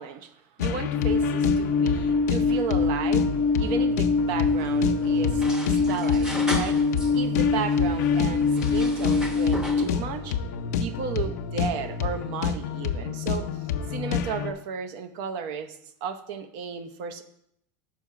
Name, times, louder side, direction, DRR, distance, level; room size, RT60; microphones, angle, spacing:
voice 1, 0.0-10.4 10.8-13.6 13.9-17.2, right 7 dB, 65° right, 10 dB, 0.7 m, -34 dB
sound 1, 0.6-14.5, left 8 dB, 90° left, 0.6 m, -29 dB
Alarm, 0.9-9.8, left 4 dB, 20° left, 0.4 m, -24 dB
sound 2, 4.3-7.2 7.5-10.0, equal, 5° right, 0.7 m, -38 dB
6.1 x 4.6 x 6.0 m, 0.75 s
supercardioid pair, 130°, 9 cm